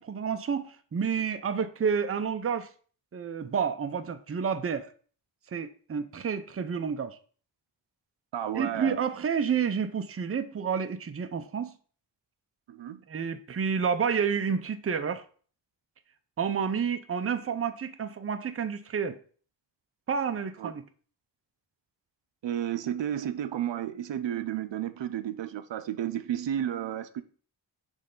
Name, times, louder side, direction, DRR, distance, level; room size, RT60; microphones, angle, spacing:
voice 1, 0.0-2.7 3.1-4.9 5.5-7.2 8.5-11.7 13.1-15.2 16.4-19.2 20.1-20.8, right 6 dB, 35° right, 0.5 m, -30 dB
voice 2, 8.3-9.0 12.7-13.0 20.6-20.7 22.4-27.2, right 10 dB, 80° right, 0.6 m, -32 dB
6.3 x 3.2 x 5.2 m
wide cardioid pair, 115°, 43 cm